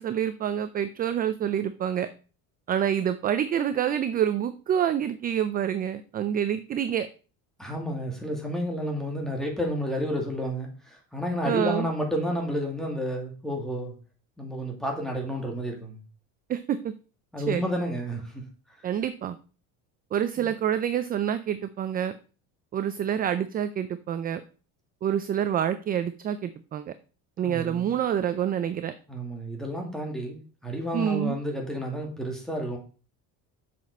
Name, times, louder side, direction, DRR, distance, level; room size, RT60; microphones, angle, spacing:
voice 1, 0.0-2.1 2.7-7.1 11.5-11.9 16.5-16.9 17.5-17.6 18.8-19.4 20.1-22.1 22.7-24.4 25.0-26.9 27.4-28.9 30.9-31.4, right 9 dB, 25° right, 12 dB, 0.4 m, -27 dB
voice 2, 7.6-13.9 14.4-16.0 17.3-18.4 20.4-20.5 27.4-27.9 29.1-32.8, equal, ahead, 1 dB, 2.2 m, -31 dB
7.5 x 6.1 x 5.3 m, 0.37 s
cardioid pair, 150°, 36 cm